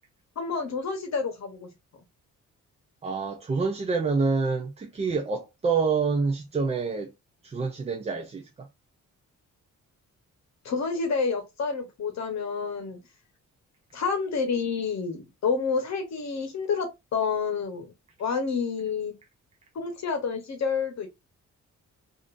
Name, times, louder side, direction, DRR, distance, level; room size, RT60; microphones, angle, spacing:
voice 1, 0.4-1.7 10.6-13.0 13.9-17.9 18.2-19.1 19.7-21.1, left 5 dB, 60° left, 1.0 m, -29 dB
voice 2, 3.0-7.1 7.4-8.7, right 4 dB, 20° right, 0.4 m, -27 dB
3.6 x 2.5 x 2.4 m
wide cardioid pair, 175°, 31 cm